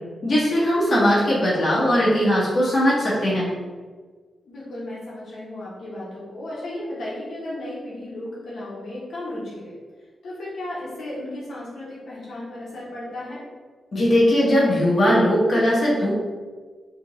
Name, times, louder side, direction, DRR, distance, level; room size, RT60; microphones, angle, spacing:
voice 1, 0.2-3.5 13.9-16.1, equal, 40° left, -7 dB, 1.0 m, -19 dB
voice 2, 4.4-9.7 10.2-13.4, left 1 dB, 65° left, -7 dB, 0.9 m, -34 dB
3.4 x 2.8 x 3.0 m, 1.5 s
wide cardioid pair, 165°, 0 cm